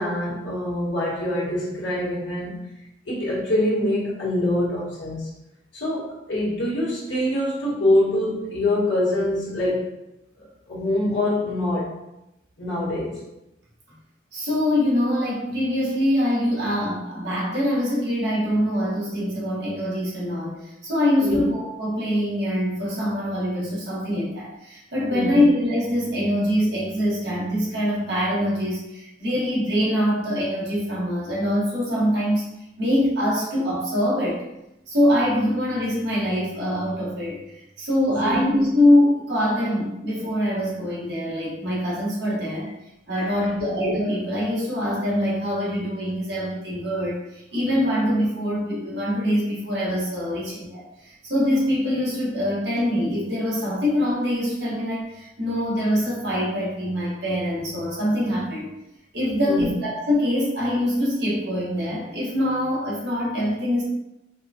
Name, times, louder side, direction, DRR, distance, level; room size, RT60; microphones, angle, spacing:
voice 1, 0.0-2.6 3.0-5.3 5.7-9.9 10.4-11.9 12.6-13.2 21.2-21.4 25.1-25.4 38.1-38.4 43.2-43.5 59.4-59.7, left 1 dB, 80° left, -9 dB, 1.4 m, -25 dB
voice 2, 14.3-32.5 32.8-34.4 34.9-42.7 43.1-58.7 59.1-63.8, left 1 dB, 65° right, -6 dB, 1.3 m, -24 dB
4.8 x 2.3 x 2.8 m, 0.89 s
head